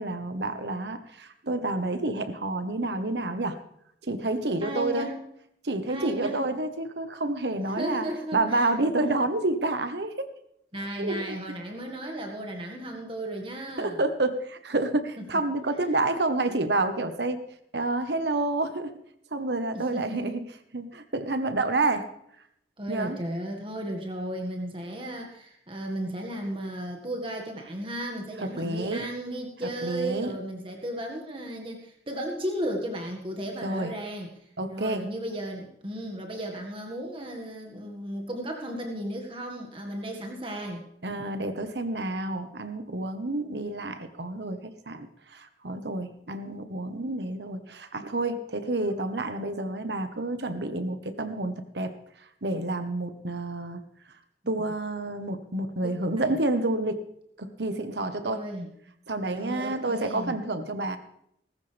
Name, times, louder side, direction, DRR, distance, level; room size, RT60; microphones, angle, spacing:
voice 1, 0.0-3.6 4.0-5.1 5.6-8.1 8.3-10.3 11.0-11.4 13.8-17.4 17.7-18.9 19.3-20.4 20.7-22.1 22.9-23.2 28.5-29.1 29.6-30.3 33.6-33.9 34.6-35.0 41.0-51.9 52.2-53.8 54.5-57.0 57.4-58.4 59.1-61.0, right 2 dB, 70° right, 9 dB, 1.3 m, -29 dB
voice 2, 4.6-5.2 5.9-6.4 7.6-8.7 10.7-14.0 15.2-15.3 15.8-16.0 19.7-20.2 22.8-34.3 34.7-40.8 56.2-56.4 58.2-58.7 59.2-60.3, right 1 dB, 30° right, 2 dB, 1.9 m, -35 dB
18.5 x 15.0 x 3.4 m, 0.73 s
head